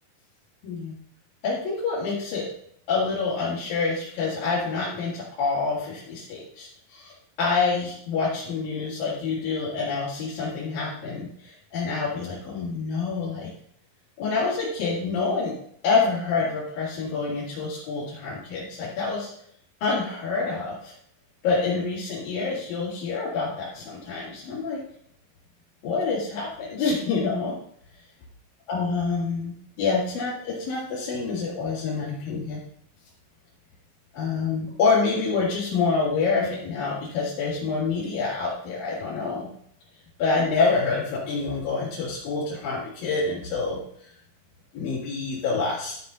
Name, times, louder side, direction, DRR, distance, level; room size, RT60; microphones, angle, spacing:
voice 1, 0.6-1.0 1.4-2.5 2.9-13.5 14.2-15.5 15.8-19.3 19.8-20.9 21.4-24.8 25.8-27.5 28.7-32.6 34.1-39.5 40.2-43.8 44.7-46.0, left 4 dB, 75° left, -8 dB, 3.9 m, -27 dB
10.5 x 7.4 x 3.9 m, 0.65 s
omnidirectional pair, 4.1 m